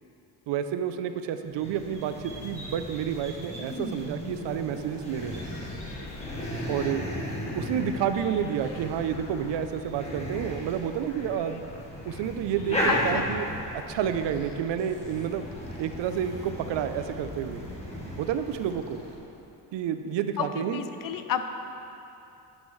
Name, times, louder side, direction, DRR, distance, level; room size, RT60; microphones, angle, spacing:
voice 1, 0.5-5.4 6.7-7.1 7.6-11.7 12.1-13.5 13.7-15.4 15.8-17.7 18.2-19.0 19.7-20.8, right 8 dB, 85° right, 9 dB, 0.6 m, -30 dB
sound 1, 1.5-19.2, equal, 15° left, 1.6 m, -36 dB
sound 2, 5.2-13.3 14.3-16.5 17.2-17.7 18.4-19.2, left 4 dB, 75° left, 0.9 m, -47 dB
voice 2, 12.9-13.3 20.4-21.5, left 8 dB, 50° left, 8 dB, 0.6 m, -31 dB
11.5 x 8.7 x 3.2 m, 2.8 s
cardioid pair, 165°, 42 cm